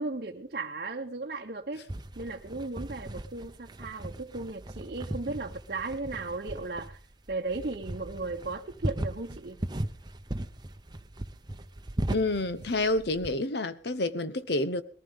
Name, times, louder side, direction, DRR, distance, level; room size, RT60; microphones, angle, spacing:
voice 1, 0.0-1.8 2.2-7.0 7.3-9.6, right 3 dB, 50° right, 0.9 m, -36 dB
sound 1, 1.9-13.3, right 1 dB, 25° right, 0.8 m, -38 dB
voice 2, 12.1-14.8, left 2 dB, 65° left, 1.0 m, -28 dB
21.0 x 15.0 x 3.7 m
head